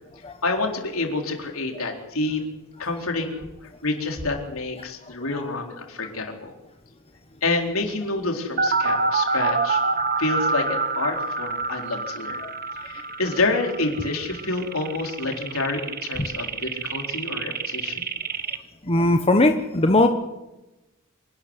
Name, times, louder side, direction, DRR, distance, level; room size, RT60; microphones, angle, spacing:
voice 1, 0.4-2.4 2.8-6.5 7.4-9.8 10.2-12.4 12.8-18.0, left 3 dB, 70° left, 2 dB, 4.3 m, -28 dB
sound 1, 8.6-18.6, right 4 dB, 45° right, 1.3 m, -27 dB
voice 2, 18.9-20.1, left 2 dB, 30° left, 5 dB, 1.3 m, -19 dB
26.5 x 12.5 x 9.8 m, 1.0 s
head